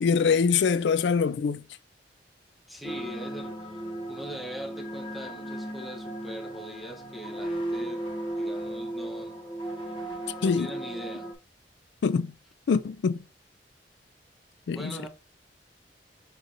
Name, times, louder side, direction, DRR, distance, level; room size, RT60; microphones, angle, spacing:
voice 1, 0.0-1.6 10.4-10.7 12.0-12.3 12.7-13.2 14.7-14.9, left 5 dB, 75° left, 0.4 m, -24 dB
voice 2, 2.7-3.8 4.1-8.0 8.4-9.4 10.4-11.3 14.7-15.1, equal, ahead, 0.8 m, -41 dB
sound 1, 2.8-11.3, right 1 dB, 30° left, 0.8 m, -36 dB
6.3 x 3.0 x 2.5 m
head